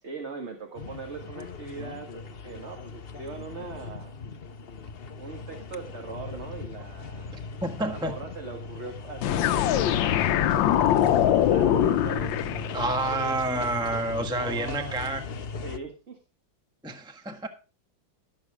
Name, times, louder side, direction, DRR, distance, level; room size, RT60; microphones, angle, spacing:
voice 1, 0.0-4.2 5.2-7.5 7.8-13.4 14.3-15.0 15.6-16.2, right 4 dB, 35° right, 2.0 m, -40 dB
sound 1, 0.7-15.8, left 4 dB, 45° left, 0.7 m, -39 dB
voice 2, 7.6-8.1 12.7-15.2 16.8-17.5, right 2 dB, 5° right, 1.1 m, -29 dB
sound 2, 9.2-13.2, left 11 dB, 75° left, 1.4 m, -23 dB
16.5 x 7.2 x 4.8 m
omnidirectional pair, 2.1 m